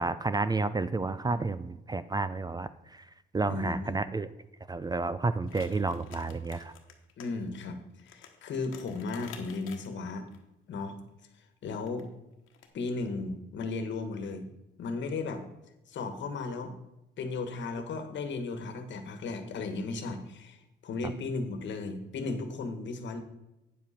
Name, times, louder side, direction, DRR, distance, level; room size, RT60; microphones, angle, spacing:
voice 1, 0.0-3.0 3.3-4.3 4.7-6.7, right 3 dB, 20° right, 14 dB, 0.4 m, -31 dB
voice 2, 3.5-4.0 7.2-10.3 10.7-11.0 11.6-12.1 12.7-14.4 14.8-15.4 15.9-16.7 17.2-23.2, left 3 dB, 65° left, 8 dB, 1.4 m, -35 dB
sound 1, 5.4-7.3 7.5-7.6 8.0-10.4 11.7-12.0 12.5-12.7, left 8 dB, 90° left, 1.2 m, -50 dB
9.2 x 7.3 x 4.2 m, 0.96 s
cardioid pair, 90°, 20 cm